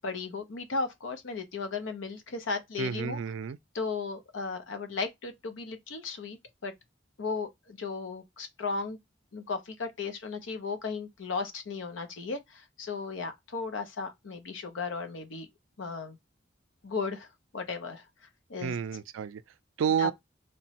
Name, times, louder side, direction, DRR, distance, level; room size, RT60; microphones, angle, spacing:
voice 1, 0.0-3.2 3.7-6.4 6.6-6.7 7.2-9.0 9.3-15.5 15.8-16.2 16.8-17.3 17.5-18.0 18.5-18.8 20.0-20.1, left 4 dB, 80° left, 0.6 m, -35 dB
voice 2, 2.8-3.6 18.6-19.4 19.8-20.1, right 7 dB, 90° right, 0.3 m, -30 dB
2.9 x 2.1 x 2.8 m
head